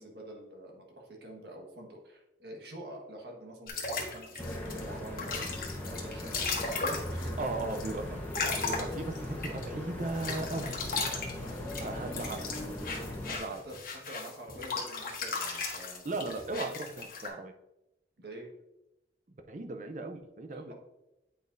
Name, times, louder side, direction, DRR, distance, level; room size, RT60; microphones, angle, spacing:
voice 1, 0.0-8.2 11.2-12.4 13.2-16.7 18.2-18.5 20.5-20.7, right 1 dB, 70° right, 0 dB, 1.5 m, -47 dB
sound 1, 3.7-9.7 10.1-17.3, left 4 dB, 55° left, 1.2 m, -36 dB
sound 2, 4.4-13.4, left 1 dB, 10° left, 1.0 m, -39 dB
voice 2, 7.4-8.0 8.6-10.7 11.8-12.5 13.4-13.6 16.0-17.5 19.5-20.7, right 2 dB, 45° right, 6 dB, 0.5 m, -37 dB
8.6 x 5.1 x 2.6 m, 0.95 s
head